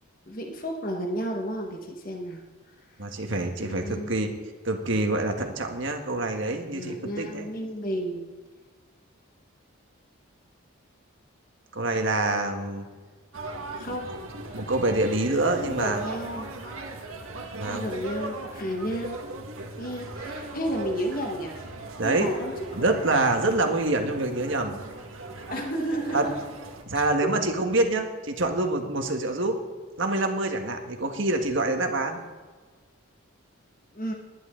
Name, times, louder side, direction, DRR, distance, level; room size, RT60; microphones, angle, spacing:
voice 1, 0.3-2.4 3.6-4.1 6.7-8.3 13.7-14.1 14.5-14.7 15.6-16.5 17.6-19.2 19.8-21.7 22.0-22.9 25.5-26.3 26.9-27.3 33.9-34.1, equal, 40° left, 1 dB, 1.7 m, -32 dB
voice 2, 3.0-4.3 4.6-7.5 11.7-12.9 14.1-14.2 14.5-16.0 17.5-17.9 22.0-22.3 22.7-24.8 26.1-26.3 26.9-29.6 30.0-32.2, right 2 dB, 60° right, 4 dB, 1.7 m, -26 dB
sound 1, 13.3-26.8, right 2 dB, 80° right, 1.9 m, -38 dB
20.0 x 11.0 x 3.9 m, 1.4 s
head